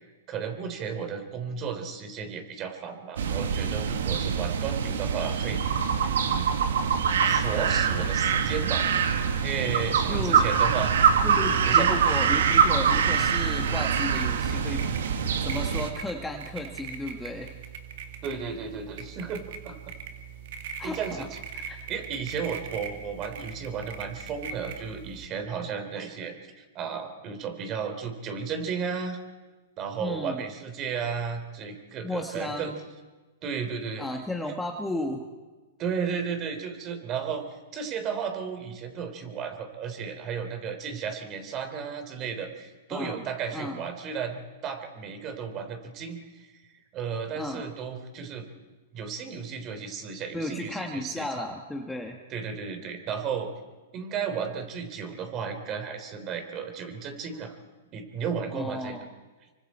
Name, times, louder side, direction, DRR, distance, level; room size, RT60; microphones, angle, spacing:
voice 1, 0.0-5.6 6.2-6.6 7.2-11.0 11.7-11.9 18.2-19.8 20.8-21.4 21.7-29.2 29.8-32.7 33.4-34.1 34.5-34.6 35.8-48.5 48.9-51.3 52.3-53.5 53.9-57.6 57.9-58.9, right 6 dB, 35° right, 7 dB, 3.5 m, -34 dB
sound 1, 3.2-15.9, right 7 dB, 75° right, 1.8 m, -24 dB
voice 2, 10.1-10.5 11.2-17.6 20.8-21.8 30.0-30.5 32.0-32.8 34.0-35.3 42.9-43.3 43.5-43.8 47.3-47.7 50.3-52.2 58.5-59.1, left 1 dB, 5° left, 2 dB, 1.5 m, -34 dB
sound 2, 13.4-25.3, right 6 dB, 60° right, 2.2 m, -41 dB
26.5 x 24.5 x 4.4 m, 1.2 s
hypercardioid pair, 125°, 0 cm